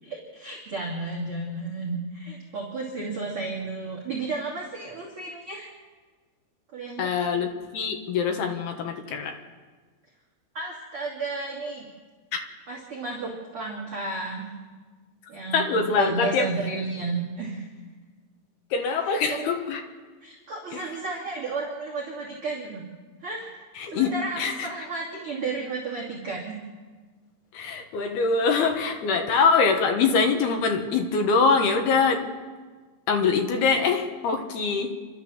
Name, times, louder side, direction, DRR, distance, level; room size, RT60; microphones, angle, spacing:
voice 1, 0.0-5.7 6.7-7.1 10.5-11.9 12.7-14.5 15.3-17.7 19.0-19.5 20.2-22.8 23.2-26.5, right 3 dB, 35° right, -4 dB, 2.7 m, -33 dB
voice 2, 7.0-9.4 15.5-16.5 18.7-19.8 20.7-20.8 23.8-24.7 27.5-32.3 33.1-34.9, left 5 dB, 65° left, 4 dB, 3.0 m, -24 dB
29.0 x 13.0 x 7.2 m, 1.4 s
omnidirectional pair, 5.6 m